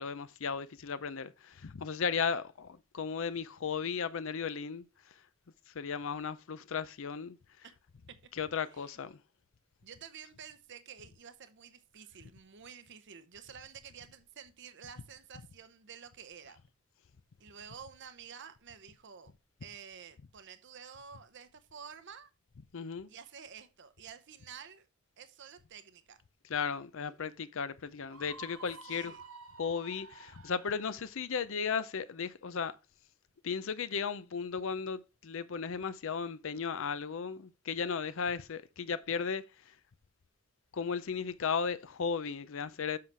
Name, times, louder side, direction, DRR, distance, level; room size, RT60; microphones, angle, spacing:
voice 1, 0.0-5.1 5.7-7.6 8.3-9.2 22.7-23.1 26.4-29.1 29.6-32.7 33.4-39.7 40.7-43.0, left 6 dB, 60° left, 0.5 m, -35 dB
voice 2, 9.8-16.6 17.4-19.3 19.6-22.3 23.1-24.9 25.2-26.2 28.9-29.2, right 7 dB, 55° right, 0.8 m, -50 dB
Screaming, 28.1-31.0, right 3 dB, 80° right, 2.1 m, -51 dB
7.7 x 5.7 x 4.6 m
head